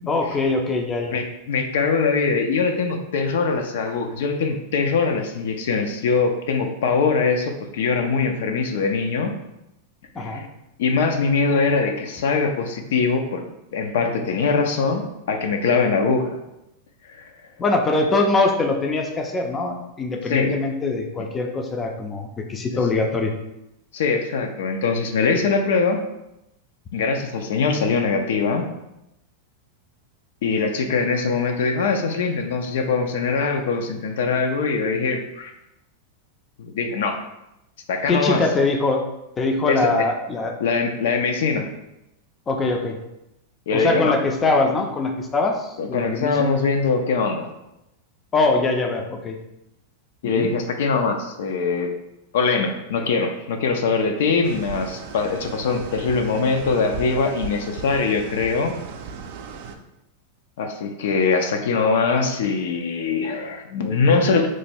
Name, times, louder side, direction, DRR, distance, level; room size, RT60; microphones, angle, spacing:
voice 1, 0.1-1.2 10.2-10.4 17.6-23.3 38.1-39.0 39.4-40.5 42.5-43.0 43.7-46.5 48.3-49.4 50.2-50.5, left 3 dB, 20° left, 3 dB, 0.4 m, -22 dB
voice 2, 1.1-9.3 10.2-10.5 10.8-13.4 13.7-16.4 17.1-17.3 20.3-20.6 22.7-22.8 23.9-26.0 26.9-28.7 30.4-35.5 36.6-37.2 37.9-38.4 39.7-39.9 40.6-41.7 43.7-44.1 45.8-47.5 50.2-51.9 52.3-58.8 60.6-64.5, left 4 dB, 75° left, 5 dB, 0.5 m, -22 dB
sound 1, 54.4-59.8, right 5 dB, 60° right, 0.4 m, -36 dB
3.0 x 2.3 x 4.3 m, 0.87 s
supercardioid pair, 145°, 0 cm